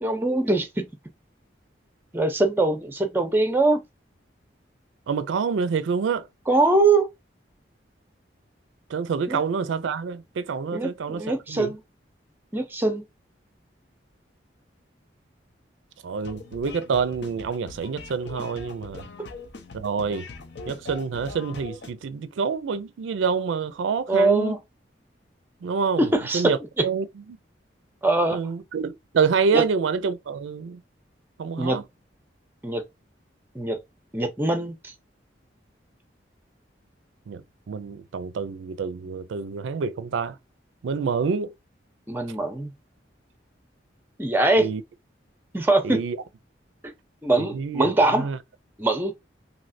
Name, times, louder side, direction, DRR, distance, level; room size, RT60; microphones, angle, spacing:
voice 1, 0.0-0.9 2.1-3.8 6.5-7.1 9.3-9.4 10.7-11.8 12.5-13.0 24.1-24.6 26.0-26.8 28.0-28.4 29.5-29.6 31.6-31.8 32.6-32.8 33.5-33.8 34.1-34.9 42.1-42.7 44.2-44.7 45.5-46.0 47.2-48.3 48.8-49.1, right 2 dB, 10° right, 0.5 m, -22 dB
voice 2, 5.1-6.3 8.9-11.7 16.0-19.1 19.7-20.3 20.7-24.6 25.6-26.1 26.3-27.1 28.3-30.8 31.4-31.8 37.3-40.4 40.8-41.5 44.6-44.8 45.8-46.2 47.5-47.9 48.2-48.4, right 5 dB, 90° right, 0.4 m, -27 dB
sound 1, 16.2-21.9, left 3 dB, 70° left, 0.6 m, -42 dB
3.1 x 2.8 x 2.5 m
head